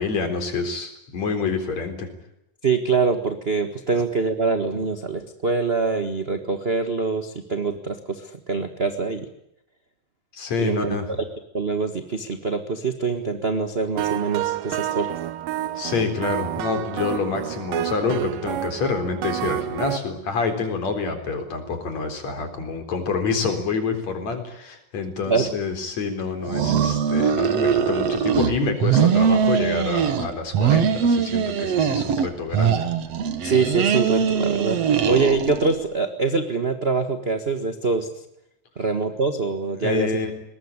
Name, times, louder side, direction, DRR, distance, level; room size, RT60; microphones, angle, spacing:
voice 1, 0.0-2.1 10.3-11.1 15.8-32.8 39.8-40.3, left 4 dB, 55° left, 7 dB, 5.1 m, -27 dB
voice 2, 2.6-9.3 10.6-11.0 11.5-15.1 25.2-25.5 33.4-38.1 38.8-40.1, right 4 dB, 30° right, 8 dB, 1.1 m, -24 dB
sound 1, 14.0-20.0, right 13 dB, 80° right, 2.7 m, -29 dB
sound 2, 26.4-28.5 28.8-30.3 30.5-32.3 32.5-35.7, right 7 dB, 55° right, 2.5 m, -21 dB
22.5 x 20.0 x 9.9 m, 0.80 s
omnidirectional pair, 3.8 m